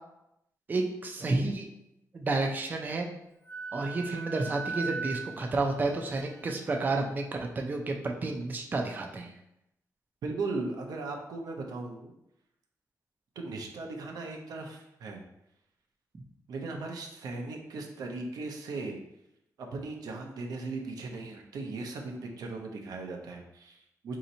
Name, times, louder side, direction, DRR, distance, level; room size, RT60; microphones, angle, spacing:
voice 1, 0.7-1.7 2.1-3.1 3.7-7.2 7.6-9.3, right 3 dB, 30° right, 2 dB, 0.4 m, -30 dB
Wind instrument woodwind instrument, 3.5-6.9, right 5 dB, 45° left, 1.0 m, -39 dB
voice 2, 10.2-12.1 13.4-15.2 16.5-19.0 19.6-24.2, right 3 dB, 85° right, 2 dB, 0.6 m, -37 dB
4.1 x 2.8 x 2.6 m, 0.83 s
wide cardioid pair, 135°, 6 cm